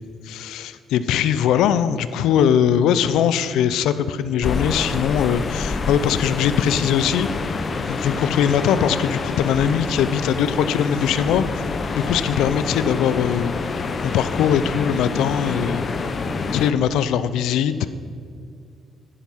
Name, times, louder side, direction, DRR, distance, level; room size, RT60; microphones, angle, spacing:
voice 1, 0.2-7.3 7.9-11.7 12.0-15.9 16.5-17.9, left 9 dB, 80° left, 13 dB, 0.5 m, -21 dB
sound 1, 4.4-16.7, left 4 dB, 50° left, 1.0 m, -27 dB
10.5 x 9.9 x 5.5 m, 2.3 s
supercardioid pair, 55°, 0 cm